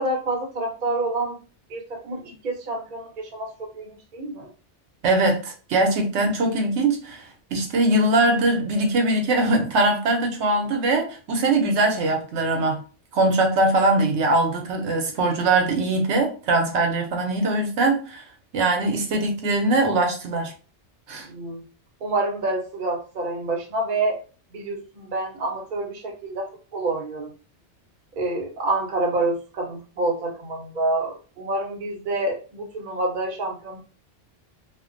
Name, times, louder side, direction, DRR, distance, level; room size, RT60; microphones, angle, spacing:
voice 1, 0.0-1.4 1.7-4.5 21.2-21.6 22.0-24.2 24.5-27.3 28.2-33.8, right 2 dB, 50° right, 0.7 m, -28 dB
voice 2, 5.0-12.8 13.1-18.2 18.5-20.5 21.1-21.3, right 2 dB, 75° right, 0.9 m, -21 dB
2.5 x 2.1 x 2.5 m
omnidirectional pair, 1.2 m